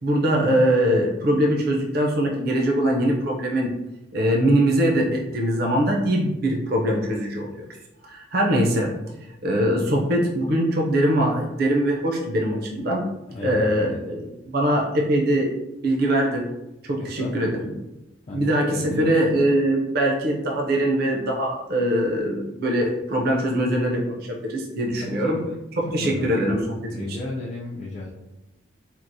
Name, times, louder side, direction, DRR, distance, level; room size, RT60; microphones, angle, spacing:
voice 1, 0.0-3.7 4.1-7.6 8.0-8.9 9.4-13.0 13.4-15.5 15.8-16.4 16.8-17.7 18.3-25.4 25.9-27.2, right 1 dB, 50° right, -1 dB, 0.5 m, -22 dB
voice 2, 13.3-14.0 17.0-17.6 18.3-19.1 25.0-25.5 26.0-26.4 26.9-28.1, left 2 dB, 30° left, -5 dB, 0.3 m, -34 dB
4.4 x 2.0 x 2.6 m, 0.95 s
head